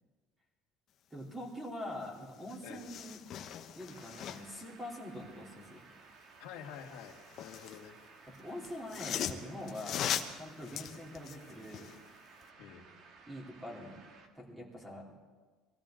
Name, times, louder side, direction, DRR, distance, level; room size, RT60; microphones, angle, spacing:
voice 1, 1.1-3.2 3.7-5.8 8.4-11.9 13.3-13.9 14.3-15.0, left 1 dB, 10° right, -2 dB, 3.6 m, -44 dB
sound 1, 2.0-2.1 2.4-4.6 6.8-7.8 8.6-12.0 12.4-12.5, left 9 dB, 45° left, 1.0 m, -40 dB
sound 2, 3.9-14.3, right 4 dB, 50° right, 1.8 m, -57 dB
voice 2, 6.4-8.0 10.6-10.9 12.6-12.8, left 8 dB, 75° left, 1 dB, 2.2 m, -49 dB
23.5 x 15.0 x 3.9 m, 1.4 s
cardioid pair, 140°, 0 cm